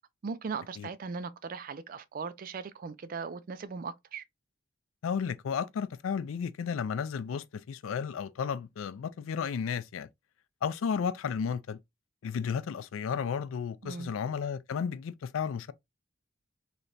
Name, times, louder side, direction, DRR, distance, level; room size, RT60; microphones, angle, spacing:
voice 1, 0.2-4.2 13.8-14.1, right 5 dB, 45° right, 0.4 m, -38 dB
voice 2, 5.0-10.1 10.6-11.8 12.2-15.7, left 6 dB, 80° left, 0.4 m, -33 dB
3.2 x 2.8 x 2.6 m
head